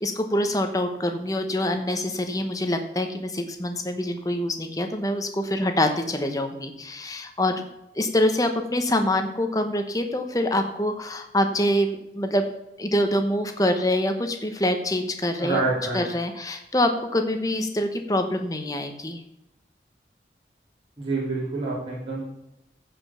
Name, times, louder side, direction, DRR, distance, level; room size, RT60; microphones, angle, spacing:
voice 1, 0.0-7.6 7.9-12.4 12.8-15.6 15.9-19.2, left 1 dB, 20° left, 6 dB, 1.0 m, -25 dB
voice 2, 15.4-16.0 21.0-22.2, right 3 dB, 30° right, -7 dB, 4.1 m, -27 dB
15.0 x 5.3 x 5.7 m, 0.85 s
head